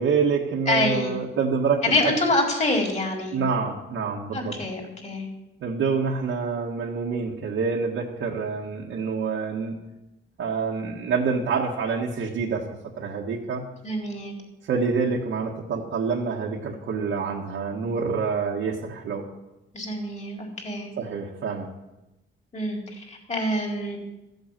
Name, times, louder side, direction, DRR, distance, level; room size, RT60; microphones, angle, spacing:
voice 1, 0.0-2.1 3.3-4.6 5.6-9.8 10.4-13.7 14.7-19.3 21.0-21.7, right 5 dB, 75° right, -2 dB, 1.6 m, -27 dB
voice 2, 0.7-1.2 1.8-3.4 4.3-5.3 13.8-14.4 19.7-20.9 22.5-24.0, left 2 dB, 35° left, 0 dB, 4.3 m, -26 dB
15.0 x 8.0 x 7.5 m, 0.97 s
cardioid pair, 110°, 21 cm